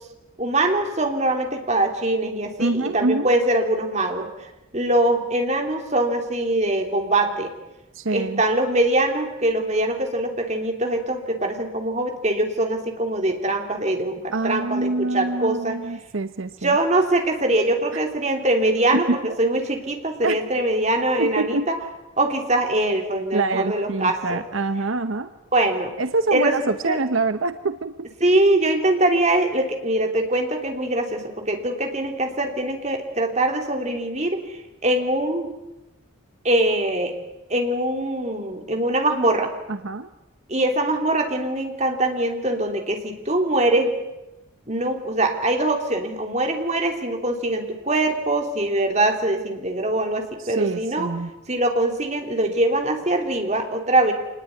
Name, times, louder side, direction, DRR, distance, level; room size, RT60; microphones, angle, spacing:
voice 1, 0.4-4.3 4.7-7.5 8.1-15.8 16.6-19.1 19.4-21.8 22.2-24.4 25.5-25.9 26.3-26.6 26.9-27.0 28.2-35.5 36.4-37.1 37.5-39.5 40.5-43.9 44.7-51.1 51.5-54.1, right 1 dB, 35° right, 4 dB, 3.2 m, -22 dB
voice 2, 2.6-3.3 7.9-8.4 14.3-16.8 18.9-19.2 20.2-20.4 21.2-21.7 23.3-25.3 26.0-28.1 39.7-40.1 50.4-51.3, right 3 dB, 75° right, 11 dB, 1.0 m, -25 dB
26.0 x 20.0 x 9.5 m, 0.96 s
head